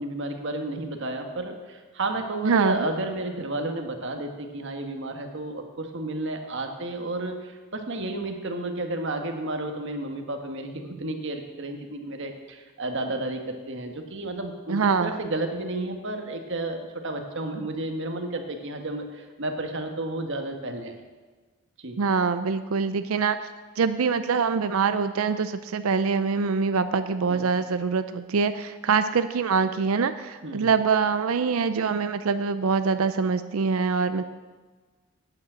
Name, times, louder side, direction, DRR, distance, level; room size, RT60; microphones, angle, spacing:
voice 1, 0.0-20.9 21.8-22.0 27.3-27.6 30.4-30.7, right 2 dB, 60° right, 4 dB, 1.4 m, -32 dB
voice 2, 2.4-2.7 14.7-15.2 22.0-23.4 23.8-34.2, right 5 dB, 80° right, 10 dB, 0.5 m, -24 dB
9.3 x 8.6 x 7.5 m, 1.4 s
head